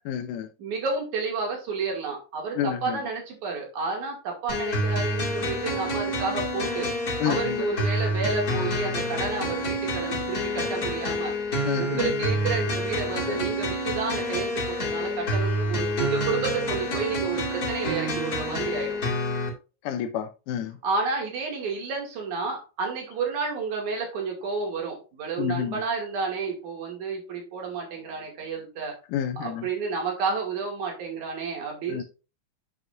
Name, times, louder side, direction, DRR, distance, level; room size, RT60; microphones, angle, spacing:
voice 1, 0.1-0.5 2.6-3.0 7.2-7.7 11.7-12.1 13.3-13.4 19.8-20.8 25.4-25.8 29.1-29.7 31.9-32.0, left 9 dB, 80° left, 2.2 m, -29 dB
voice 2, 0.6-6.9 7.3-11.3 11.7-19.0 20.8-28.9 29.4-32.0, right 4 dB, 65° right, 3.7 m, -31 dB
Piano School, 4.5-19.5, left 1 dB, 30° left, 2.5 m, -28 dB
7.8 x 7.8 x 2.6 m
omnidirectional pair, 3.7 m